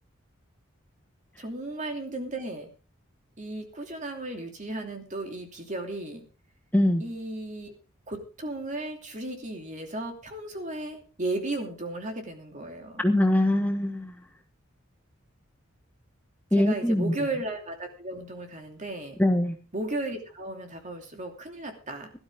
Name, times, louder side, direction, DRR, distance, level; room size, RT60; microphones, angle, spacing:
voice 1, 1.4-2.7 3.4-6.2 7.0-7.7 8.1-13.0 16.6-19.2 19.7-22.1, right 2 dB, 35° right, 4 dB, 2.8 m, -35 dB
voice 2, 13.0-14.1 16.5-17.1 19.2-19.6, left 1 dB, 10° left, 4 dB, 1.3 m, -22 dB
17.5 x 12.5 x 3.7 m, 0.34 s
head